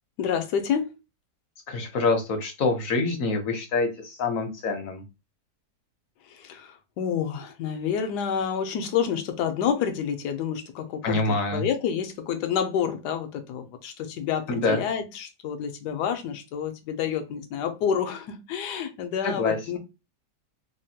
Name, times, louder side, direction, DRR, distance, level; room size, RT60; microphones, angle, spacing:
voice 1, 0.2-0.9 6.3-19.8, left 8 dB, 80° left, 1.2 m, -29 dB
voice 2, 1.7-5.0 11.0-11.6 14.5-14.8 19.2-19.8, left 3 dB, 65° left, 0.9 m, -26 dB
3.3 x 2.2 x 2.7 m
omnidirectional pair, 1.8 m